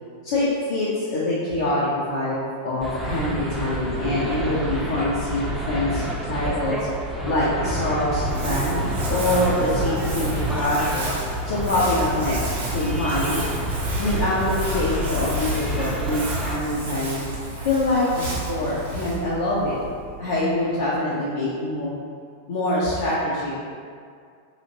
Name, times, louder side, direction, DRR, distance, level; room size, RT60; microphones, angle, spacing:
voice 1, 0.2-6.9 7.2-11.1 11.4-13.5 14.0-17.2 17.6-19.8 20.2-21.9 22.5-23.7, left 1 dB, 55° left, -8 dB, 0.5 m, -25 dB
sound 1, 2.8-16.5, equal, 5° right, 0.4 m, -28 dB
Crumpling crinkling, 8.1-20.6, right 2 dB, 65° right, 0.6 m, -32 dB
2.8 x 2.4 x 2.7 m, 2.2 s
figure-of-eight pair, 90°, 0 cm